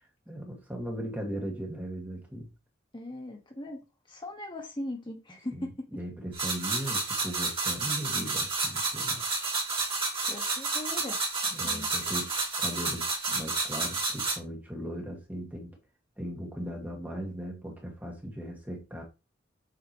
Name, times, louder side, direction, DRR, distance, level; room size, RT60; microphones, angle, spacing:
voice 1, 0.3-2.5 5.5-9.2 11.5-12.3 12.6-15.7 16.2-19.0, equal, 10° right, 1.9 m, -38 dB
voice 2, 2.9-3.8 4.1-5.9 10.3-11.2 11.6-11.9, left 1 dB, 25° left, 1.5 m, -39 dB
sound 1, 6.3-14.4, right 3 dB, 30° right, 2.9 m, -30 dB
7.8 x 5.2 x 3.1 m
head